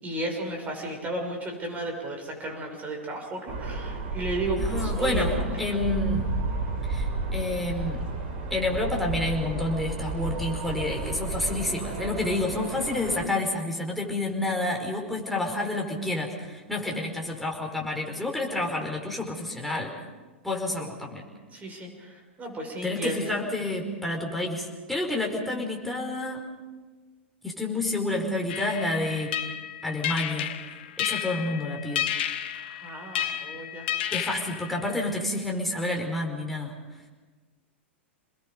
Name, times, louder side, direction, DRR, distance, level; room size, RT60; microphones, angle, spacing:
voice 1, 0.0-5.6 21.5-23.2 32.5-33.9, right 1 dB, 25° right, 2 dB, 6.3 m, -34 dB
sound 1, 3.5-13.3, right 3 dB, 55° right, 4.1 m, -32 dB
voice 2, 4.6-6.3 6.8-8.1 8.5-19.9 20.4-21.2 22.8-26.5 27.4-29.3 29.8-30.5 31.0-32.1 34.1-36.7, left 2 dB, ahead, -1 dB, 4.8 m, -29 dB
sound 2, 28.5-35.1, left 11 dB, 55° left, 1.5 m, -32 dB
28.5 x 21.0 x 5.4 m, 1.4 s
figure-of-eight pair, 100°, 7 cm